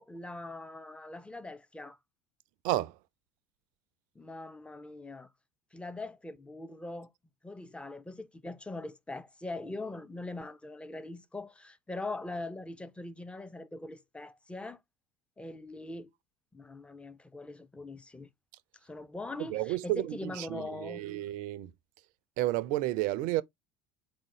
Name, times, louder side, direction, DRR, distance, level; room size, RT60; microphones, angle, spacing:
voice 1, 0.0-2.0 4.2-5.3 5.7-7.1 7.4-14.8 15.4-16.1 16.5-18.3 18.8-21.0, left 2 dB, 5° left, 0.4 m, -42 dB
voice 2, 2.6-2.9 19.4-21.7 22.4-23.4, right 16 dB, 50° right, 0.4 m, -31 dB
4.0 x 2.5 x 3.5 m
figure-of-eight pair, 70°, 17 cm